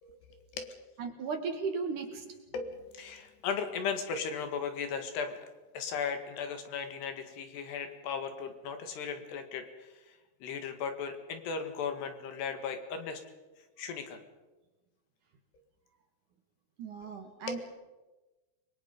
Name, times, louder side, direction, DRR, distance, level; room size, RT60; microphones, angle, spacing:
voice 1, 0.0-0.8 2.5-5.5 5.7-13.2 13.8-14.2 17.5-17.6, left 6 dB, 75° left, 7 dB, 3.9 m, -37 dB
voice 2, 1.0-2.3 16.8-17.7, right 5 dB, 55° right, 4 dB, 2.8 m, -36 dB
30.0 x 21.5 x 5.3 m, 1.1 s
omnidirectional pair, 4.9 m